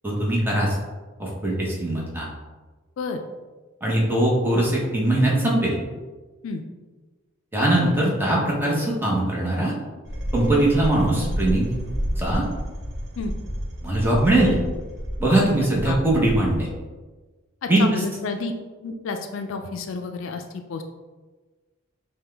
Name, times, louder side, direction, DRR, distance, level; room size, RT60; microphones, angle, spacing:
voice 1, 0.0-0.8 1.2-2.3 3.8-5.8 7.5-9.7 10.3-11.8 12.2-12.4 13.8-14.6 15.2-16.7 17.7-18.0, right 1 dB, 10° right, -4 dB, 0.8 m, -21 dB
sound 1, 10.1-16.8, equal, 55° right, 0.9 m, -30 dB
voice 2, 17.6-18.5 18.8-20.8, left 4 dB, 65° left, 6 dB, 0.3 m, -30 dB
5.6 x 2.2 x 3.3 m, 1.3 s
head